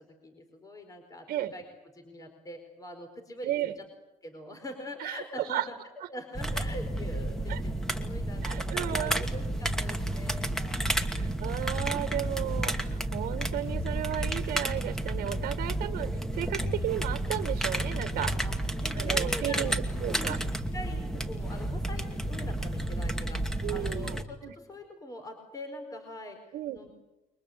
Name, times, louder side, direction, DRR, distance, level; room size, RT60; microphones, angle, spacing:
voice 1, 0.0-1.6 1.9-3.9 4.2-11.1 18.1-18.6 18.8-19.8 20.1-20.4 20.7-26.9, left 1 dB, 25° left, 6 dB, 4.5 m, -44 dB
voice 2, 3.4-3.7 5.0-5.7 6.0-6.1 7.5-7.6 8.4-9.2 11.0-18.3 18.9-20.4 23.6-24.5 26.5-26.8, right 13 dB, 75° right, 10 dB, 1.7 m, -34 dB
sound 1, 6.3-24.2, right 1 dB, 5° left, 2.5 m, -31 dB
29.0 x 24.0 x 8.2 m, 0.98 s
cardioid pair, 125°, 15 cm